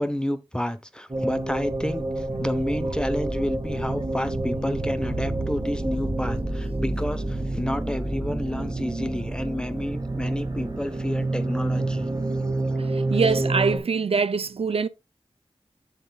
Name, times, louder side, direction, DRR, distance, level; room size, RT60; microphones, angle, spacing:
voice 1, 0.0-12.1 12.7-12.8, left 1 dB, 10° left, 0.9 m, -30 dB
sound 1, 1.1-13.8, right 2 dB, 35° right, 1.9 m, -28 dB
voice 2, 12.8-14.9, right 5 dB, 70° right, 0.5 m, -24 dB
8.3 x 7.5 x 2.3 m
wide cardioid pair, 55°, 10 cm